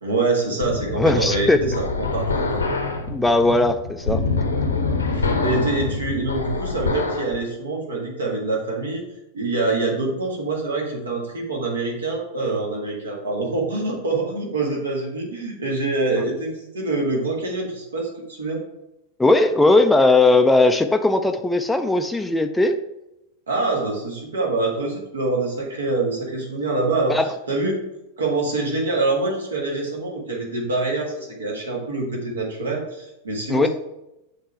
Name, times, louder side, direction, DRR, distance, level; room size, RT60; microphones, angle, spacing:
voice 1, 0.0-2.6 5.1-9.1 9.3-18.6 23.5-27.2 27.5-27.8 28.2-33.7, right 3 dB, 70° right, -1 dB, 1.5 m, -25 dB
sound 1, 0.6-7.3, left 3 dB, 75° left, 0.7 m, -25 dB
voice 2, 1.0-1.6 3.1-4.2 19.2-22.8 27.1-27.3 33.5-33.7, left 2 dB, 5° left, 6 dB, 0.3 m, -18 dB
6.5 x 3.7 x 4.5 m, 0.90 s
figure-of-eight pair, 90°, 0 cm